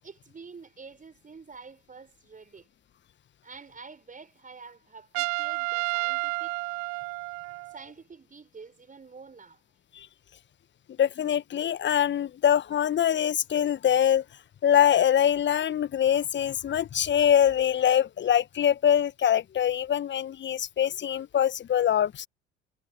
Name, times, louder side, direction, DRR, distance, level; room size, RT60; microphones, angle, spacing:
voice 1, 0.0-2.7 3.4-6.6 7.7-9.6, right 4 dB, 25° right, 5.7 m, -48 dB
Trumpet, 5.1-7.8, right 38 dB, 60° right, 2.1 m, -31 dB
voice 2, 11.0-14.2 14.6-22.3, left 9 dB, 35° left, 1.3 m, -24 dB
figure-of-eight pair, 55°, 33 cm